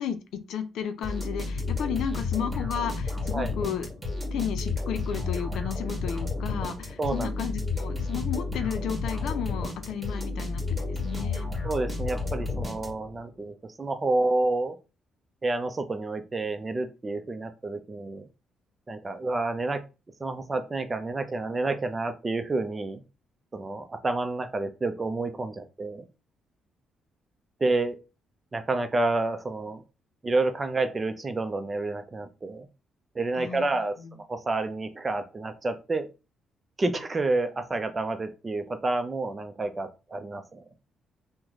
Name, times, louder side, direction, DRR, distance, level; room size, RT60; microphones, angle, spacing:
voice 1, 0.0-3.9 4.3-11.5 33.3-33.7 34.0-34.2, left 8 dB, 80° left, 10 dB, 0.5 m, -33 dB
sound 1, 1.0-13.2, left 3 dB, 10° right, 1.4 m, -31 dB
voice 2, 7.0-7.3 11.6-14.8 15.4-18.3 18.9-19.8 20.2-23.0 23.5-26.1 27.6-28.0 28.5-29.8 30.2-32.7 33.1-36.1 36.8-40.6, right 2 dB, 25° right, 8 dB, 0.5 m, -29 dB
3.0 x 2.1 x 3.8 m, 0.30 s
cardioid pair, 90°, 0 cm